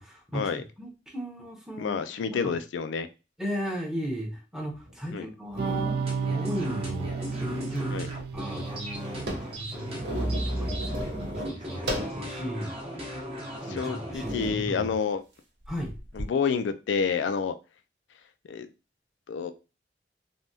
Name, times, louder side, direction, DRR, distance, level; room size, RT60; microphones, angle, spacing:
voice 1, 0.0-2.0 2.3-2.5 3.4-8.1 8.3-12.8 13.6-14.9 15.7-15.9, equal, 5° right, 0.8 m, -36 dB
voice 2, 1.8-3.1 5.1-5.3 7.9-8.1 13.7-15.2 16.2-17.5 18.5-18.7 19.3-19.5, left 6 dB, 80° left, 0.3 m, -28 dB
sound 1, 4.9-5.0 5.5-6.1 6.8-7.8 8.1-8.2 8.5-12.2 12.8-12.9 13.6-13.7 14.2-14.7 15.7-16.3, equal, 75° right, 0.9 m, -34 dB
sound 2, 5.6-10.4, right 5 dB, 60° right, 0.3 m, -34 dB
sound 3, 6.0-14.3, equal, 35° right, 0.9 m, -38 dB
3.4 x 2.2 x 2.6 m
head